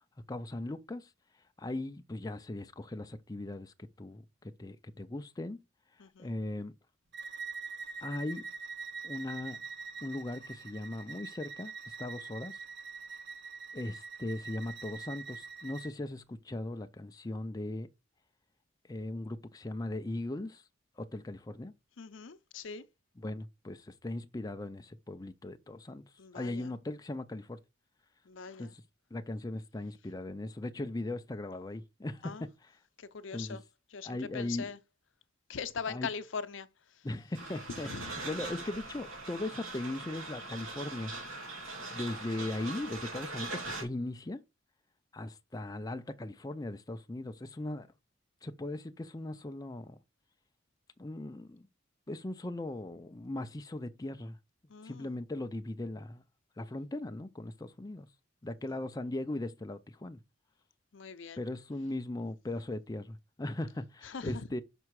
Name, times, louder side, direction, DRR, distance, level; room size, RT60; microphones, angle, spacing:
voice 1, 0.3-1.1 1.6-5.6 6.2-6.7 8.0-8.5 9.0-9.7 10.0-12.6 13.7-17.9 18.9-20.6 21.0-21.7 23.2-26.0 26.3-27.6 28.6-28.8 29.1-32.7 33.3-33.6 34.0-34.7 35.9-36.1 37.0-41.1 41.9-44.4 45.1-47.9 48.4-50.0 51.0-51.7 52.1-54.4 54.8-56.2 56.6-58.1 58.4-60.2 61.4-64.6, left 2 dB, 20° left, 0.5 m, -39 dB
voice 2, 6.0-6.3 22.0-22.8 26.2-26.7 28.3-28.7 32.2-32.4 33.0-33.6 33.9-34.8 35.5-36.7 37.7-38.2 54.7-55.1 60.9-61.4 64.0-64.5, left 5 dB, 70° left, 0.7 m, -41 dB
Bowed string instrument, 7.1-15.9, right 5 dB, 60° right, 1.2 m, -44 dB
sound 1, 37.3-43.8, right 2 dB, 85° right, 2.8 m, -41 dB
5.9 x 5.3 x 4.7 m
head